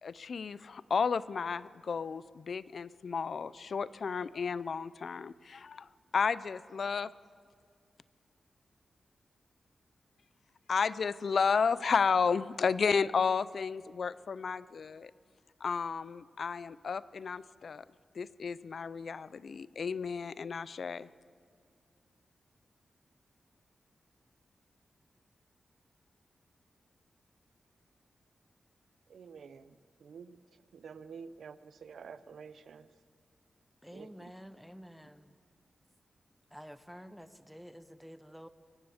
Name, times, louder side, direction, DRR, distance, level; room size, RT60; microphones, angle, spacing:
voice 1, 0.0-7.1 10.7-15.1 15.6-17.8 18.1-21.1, left 5 dB, 60° left, 18 dB, 0.4 m, -32 dB
voice 2, 29.1-32.9 33.9-34.3, right 6 dB, 85° right, 15 dB, 0.6 m, -50 dB
voice 3, 33.8-35.4 36.5-38.5, equal, ahead, 12 dB, 0.8 m, -50 dB
23.0 x 17.5 x 7.1 m, 2.1 s
wide cardioid pair, 125°, 0 cm